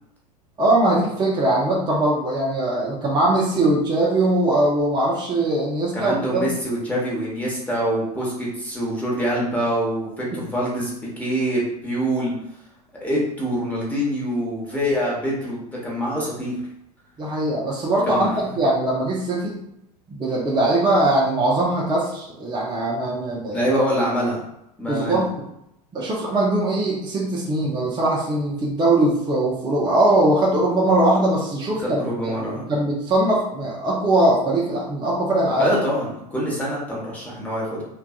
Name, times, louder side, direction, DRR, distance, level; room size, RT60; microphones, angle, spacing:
voice 1, 0.6-6.5 17.2-19.6 20.1-23.7 24.9-25.3 25.9-32.3 32.7-35.7, right 1 dB, 20° right, -5 dB, 0.5 m, -21 dB
voice 2, 5.9-12.3 13.0-16.6 18.1-18.3 23.5-24.4 24.8-25.2 31.8-32.6 35.6-37.8, equal, 5° left, -5 dB, 1.0 m, -25 dB
2.5 x 2.3 x 2.3 m, 0.81 s
hypercardioid pair, 85°, 21 cm